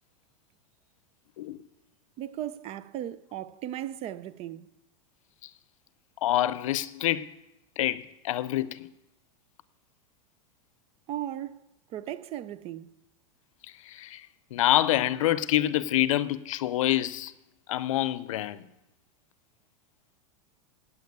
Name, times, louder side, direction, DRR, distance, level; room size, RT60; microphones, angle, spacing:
voice 1, 2.2-4.7 11.1-11.6 11.9-12.9, right 12 dB, 35° right, 0.5 m, -36 dB
voice 2, 6.2-7.3 7.8-8.9 13.8-14.3 14.5-17.3 17.7-18.6, left 14 dB, 80° left, 0.6 m, -26 dB
8.7 x 8.6 x 8.2 m
supercardioid pair, 130°, 17 cm